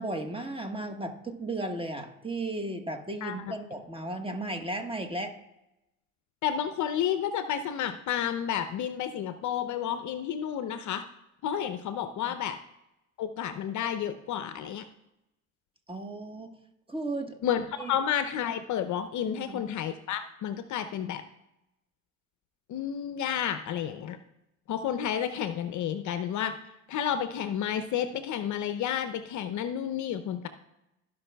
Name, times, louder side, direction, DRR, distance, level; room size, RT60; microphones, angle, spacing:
voice 1, 0.0-5.3 15.9-16.5 16.9-17.4 17.8-17.9 19.3-19.7, right 2 dB, 15° right, 5 dB, 1.3 m, -35 dB
voice 2, 3.2-3.5 6.4-11.0 11.4-12.6 13.2-14.8 17.4-21.2 22.7-24.2 24.7-26.5 26.9-30.5, left 9 dB, 45° left, 10 dB, 0.6 m, -31 dB
15.5 x 5.4 x 2.3 m, 0.89 s
hypercardioid pair, 75°, 41 cm